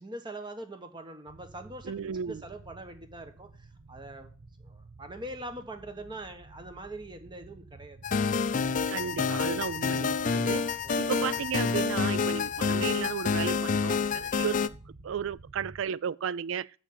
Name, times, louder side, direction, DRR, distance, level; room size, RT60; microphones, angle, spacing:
voice 1, 0.0-1.9 2.3-4.3 4.6-8.0 8.3-8.9 10.8-11.0, right 1 dB, 20° right, 1.1 m, -43 dB
sound 1, 1.3-15.8, right 3 dB, 85° right, 0.9 m, -51 dB
voice 2, 1.8-2.4 8.9-14.7 15.0-16.7, right 7 dB, 65° right, 0.4 m, -34 dB
sound 2, 8.0-14.7, left 5 dB, 40° left, 0.4 m, -28 dB
6.9 x 6.1 x 6.6 m
head